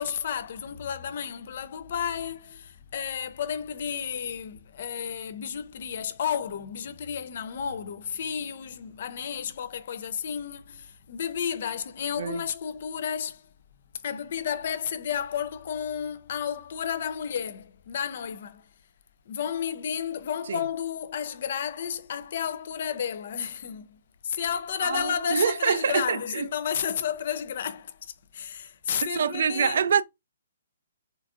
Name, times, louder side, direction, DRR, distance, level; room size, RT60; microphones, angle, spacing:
voice 1, 0.0-13.5 14.0-18.6 19.3-29.8, left 8 dB, 55° left, 0.4 m, -32 dB
voice 2, 24.8-26.5 29.1-30.0, right 7 dB, 70° right, 0.3 m, -25 dB
3.9 x 2.5 x 2.3 m
hypercardioid pair, 155°, 0 cm